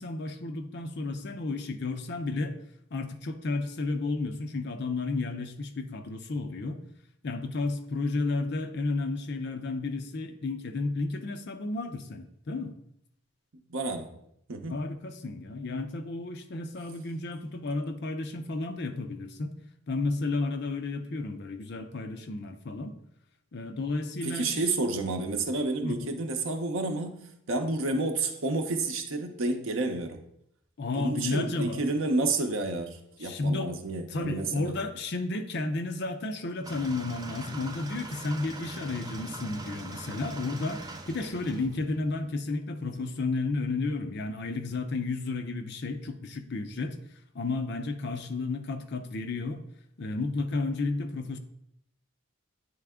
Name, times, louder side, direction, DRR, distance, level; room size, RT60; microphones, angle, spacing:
voice 1, 0.0-2.6 2.9-6.8 7.2-12.7 14.7-19.5 19.9-22.9 23.5-24.7 25.8-26.0 30.8-31.8 33.2-33.7 34.1-47.0 47.3-49.6 50.0-51.4, left 3 dB, 50° left, 7 dB, 0.5 m, -32 dB
voice 2, 13.7-14.1 14.5-14.7 24.2-30.2 31.0-34.8, right 2 dB, 65° right, 5 dB, 0.7 m, -30 dB
sound 1, 36.6-42.3, right 2 dB, 15° right, 0.4 m, -42 dB
9.0 x 3.3 x 3.6 m, 0.74 s
head